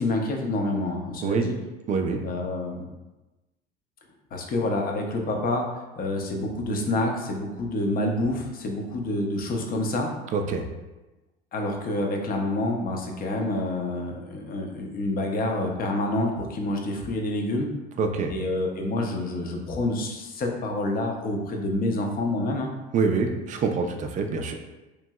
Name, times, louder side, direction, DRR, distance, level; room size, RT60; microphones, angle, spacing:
voice 1, 0.0-1.5 2.2-2.9 4.3-5.7 6.0-10.1 11.5-17.7 18.3-22.7, left 2 dB, 30° left, 2 dB, 0.6 m, -27 dB
voice 2, 1.9-2.2 10.3-10.6 18.0-18.3 22.9-24.5, right 4 dB, 25° right, 5 dB, 0.4 m, -25 dB
3.0 x 2.6 x 2.3 m, 1.1 s
hypercardioid pair, 70°, 30 cm